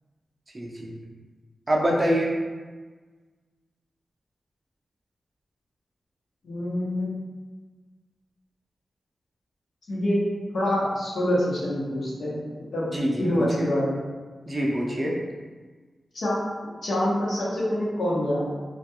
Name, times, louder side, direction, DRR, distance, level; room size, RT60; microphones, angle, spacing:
voice 1, 0.5-1.0 1.7-2.3 12.9-13.3 13.6-13.7 14.5-15.2, equal, 25° right, -2 dB, 0.4 m, -25 dB
voice 2, 6.4-7.1 9.9-10.2 10.5-12.4 12.7-12.8 13.2-14.0 16.1-16.4 16.8-18.5, left 1 dB, 85° left, -7 dB, 0.8 m, -25 dB
2.2 x 2.2 x 2.8 m, 1.4 s
wide cardioid pair, 130°, 0 cm